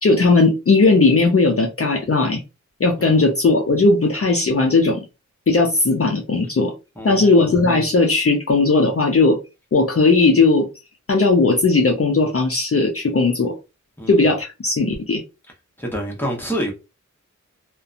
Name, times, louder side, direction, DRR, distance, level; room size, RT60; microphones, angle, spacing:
voice 1, 0.0-2.4 2.8-5.0 5.5-6.7 7.0-9.4 9.7-10.7 11.1-13.5 14.1-15.2, left 3 dB, 50° left, 0.5 m, -17 dB
voice 2, 7.0-7.4 14.0-14.2 15.8-16.7, equal, 5° left, 0.9 m, -27 dB
2.6 x 2.1 x 2.4 m
wide cardioid pair, 60°, 31 cm